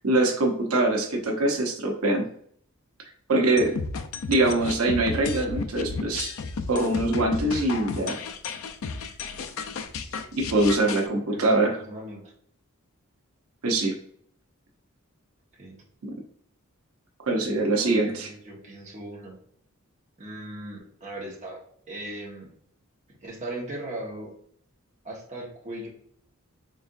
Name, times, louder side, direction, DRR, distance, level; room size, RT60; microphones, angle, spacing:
voice 1, 0.0-2.3 3.3-3.8 4.3-6.3 6.7-8.2 10.3-11.8 13.6-13.9 16.0-16.1 17.3-18.3, right 2 dB, 90° right, 2 dB, 0.8 m, -23 dB
sound 1, 3.6-11.1, left 4 dB, 70° left, 0.4 m, -33 dB
voice 2, 10.8-12.3 15.6-15.8 17.4-19.4 20.2-22.5 23.2-24.3 25.0-25.9, right 1 dB, 35° right, -3 dB, 1.3 m, -39 dB
4.2 x 3.5 x 2.5 m, 0.63 s
head